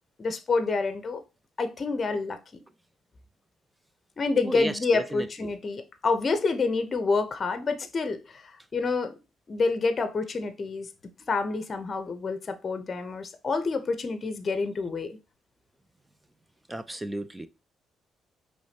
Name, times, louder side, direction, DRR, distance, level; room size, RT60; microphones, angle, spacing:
voice 1, 0.2-1.2 1.6-2.4 4.2-8.4 8.7-9.1 9.5-10.9 11.3-15.2, left 4 dB, 40° left, 0.7 m, -28 dB
voice 2, 4.4-5.5 16.7-17.5, right 1 dB, 10° right, 0.5 m, -34 dB
4.9 x 3.2 x 2.8 m
cardioid pair, 90°, 0 cm